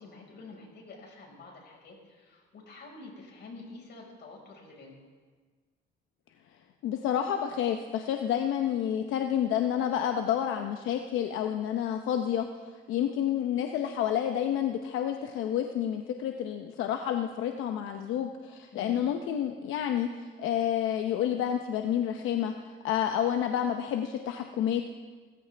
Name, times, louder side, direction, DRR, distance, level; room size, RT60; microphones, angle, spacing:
voice 1, 0.0-4.9 18.7-19.1, left 3 dB, 60° left, 0 dB, 5.2 m, -48 dB
voice 2, 6.8-24.8, left 10 dB, 90° left, 5 dB, 0.8 m, -29 dB
25.0 x 14.5 x 3.4 m, 1.5 s
cardioid pair, 90°, 20 cm